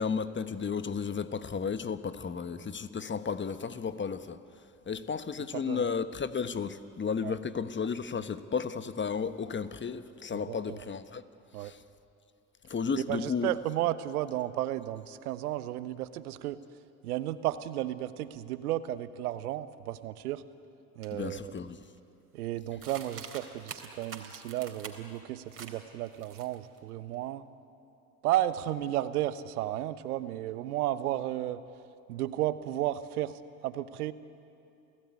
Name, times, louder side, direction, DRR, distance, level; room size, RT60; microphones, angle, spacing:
voice 1, 0.0-4.4 4.9-11.2 11.6-11.8 12.7-13.5 21.1-21.8, left 6 dB, 25° left, 12 dB, 1.2 m, -33 dB
voice 2, 5.5-5.9 7.2-7.4 10.3-10.8 11.5-11.7 12.9-16.6 17.0-20.4 21.0-21.5 22.3-27.5 28.2-31.6 32.1-34.1, right 13 dB, 80° right, 14 dB, 1.1 m, -33 dB
sound 1, 21.0-21.1 21.6-22.0 22.8-25.2 25.5-25.8 26.1-26.8, right 6 dB, 30° right, 3.7 m, -45 dB
29.0 x 17.0 x 9.7 m, 2.7 s
hypercardioid pair, 65°, 44 cm